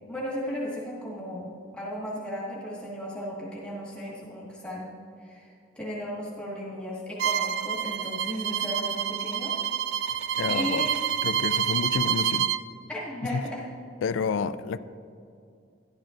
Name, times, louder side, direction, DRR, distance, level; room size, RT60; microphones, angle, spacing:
voice 1, 0.1-4.9 5.2-9.5 10.5-10.9 12.9-13.6, equal, 5° left, -6 dB, 1.6 m, -35 dB
Bowed string instrument, 7.2-12.6, right 9 dB, 65° right, 0.3 m, -28 dB
voice 2, 10.4-10.9 11.2-12.5 13.3-13.4 14.0-14.8, left 5 dB, 75° left, 13 dB, 0.3 m, -29 dB
12.5 x 11.5 x 2.5 m, 2.4 s
head